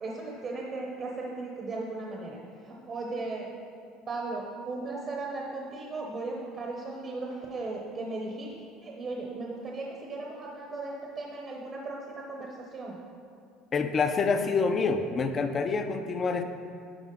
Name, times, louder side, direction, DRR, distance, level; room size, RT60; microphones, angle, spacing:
voice 1, 0.0-3.5 4.1-8.6 8.8-13.0, right 3 dB, 35° right, -1 dB, 0.9 m, -37 dB
voice 2, 13.7-16.4, left 4 dB, 30° left, 7 dB, 0.5 m, -27 dB
11.0 x 4.5 x 3.8 m, 2.4 s
cardioid pair, 125°, 0 cm